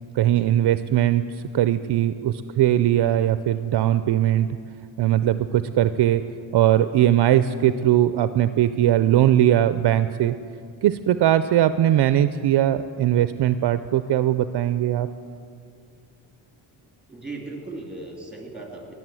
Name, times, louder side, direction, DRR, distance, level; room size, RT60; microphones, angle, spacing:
voice 1, 0.2-1.2 1.5-4.5 5.0-6.2 6.5-10.3 10.8-15.1, right 12 dB, 60° right, 12 dB, 0.5 m, -20 dB
voice 2, 17.1-18.9, right 2 dB, ahead, 0 dB, 2.8 m, -37 dB
18.5 x 7.7 x 7.6 m, 2.4 s
cardioid pair, 105°, 46 cm